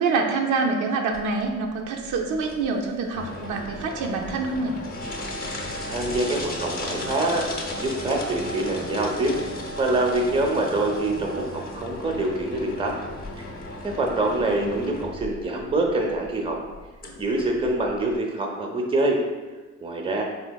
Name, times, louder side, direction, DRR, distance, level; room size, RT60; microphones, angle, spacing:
voice 1, 0.0-4.8 14.4-14.8, right 4 dB, 75° right, 1 dB, 0.5 m, -26 dB
sound 1, 1.1-18.2, left 1 dB, 30° left, 0.6 m, -35 dB
voice 2, 5.8-7.5 7.8-9.3 9.8-12.9 13.4-13.5 13.8-16.6 17.1-19.2 19.8-20.2, right 2 dB, 20° right, 0 dB, 0.5 m, -25 dB
3.6 x 2.7 x 2.2 m, 1.3 s
cardioid pair, 90°, 30 cm